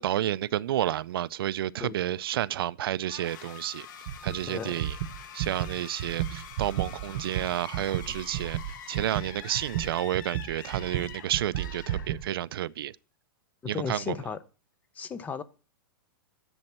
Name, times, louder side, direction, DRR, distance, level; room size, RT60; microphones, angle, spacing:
voice 1, 0.0-3.9 4.2-5.0 5.3-8.6 8.9-13.0 13.6-14.2, right 12 dB, 80° right, 0.4 m, -30 dB
sound 1, 3.0-12.6, left 8 dB, 55° left, 1.3 m, -45 dB
sound 2, 4.1-4.4 4.7-12.3, right 12 dB, 50° right, 0.8 m, -33 dB
voice 2, 13.6-14.4 14.9-15.4, left 6 dB, 15° left, 0.5 m, -34 dB
11.0 x 7.2 x 4.3 m
supercardioid pair, 160°, 12 cm